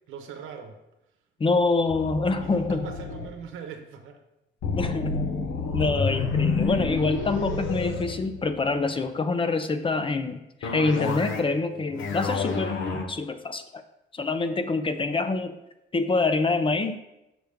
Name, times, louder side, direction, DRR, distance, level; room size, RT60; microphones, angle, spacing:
voice 1, 0.1-0.7 2.4-4.2 11.9-12.1, right 7 dB, 90° right, 4 dB, 1.0 m, -41 dB
voice 2, 1.4-2.9 4.8-5.3 5.7-13.8 14.1-15.6 15.9-17.0, left 3 dB, 25° left, 9 dB, 0.6 m, -26 dB
sound 1, 1.9-3.3 4.6-8.8 10.6-11.6 11.9-13.0, left 4 dB, 75° left, 0.9 m, -29 dB
6.5 x 6.1 x 3.5 m, 0.90 s
cardioid pair, 90°, 20 cm